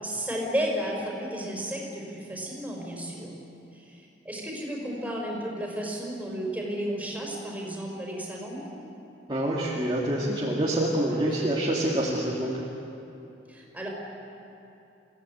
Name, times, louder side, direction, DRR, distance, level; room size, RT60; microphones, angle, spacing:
voice 1, 0.0-3.4 3.7-8.7 13.5-13.9, equal, 10° right, -3 dB, 5.2 m, -33 dB
voice 2, 9.3-12.6, right 1 dB, 25° right, -6 dB, 2.5 m, -26 dB
28.0 x 16.5 x 8.7 m, 2.8 s
head